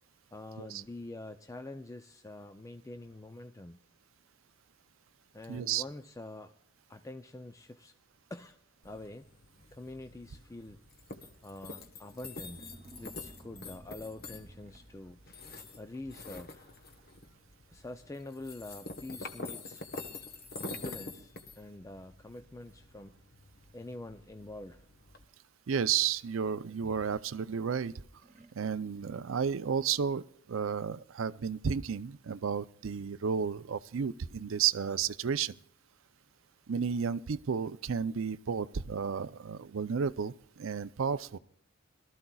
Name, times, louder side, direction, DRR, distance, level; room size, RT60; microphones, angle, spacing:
voice 1, 0.3-3.8 5.3-6.5 6.9-7.9 8.3-8.6 8.8-9.3 9.7-10.8 11.4-12.7 13.0-15.2 15.8-16.7 17.7-19.9 20.6-23.2 23.7-24.8, left 2 dB, 15° left, 8 dB, 0.5 m, -46 dB
voice 2, 5.5-5.8 25.7-27.9 28.5-35.5 36.7-41.4, right 7 dB, 75° right, 16 dB, 0.5 m, -32 dB
sound 1, 8.8-25.3, left 3 dB, 50° left, 1.2 m, -47 dB
sound 2, 12.1-15.4 16.1-16.3 16.6-17.1 17.3-17.4 18.2-18.3 18.8-18.9 19.4-19.9 20.7-20.8 23.6-24.6 26.7-27.7 28.2-29.0, right 1 dB, 35° right, 1.1 m, -56 dB
22.5 x 13.5 x 2.3 m, 0.69 s
head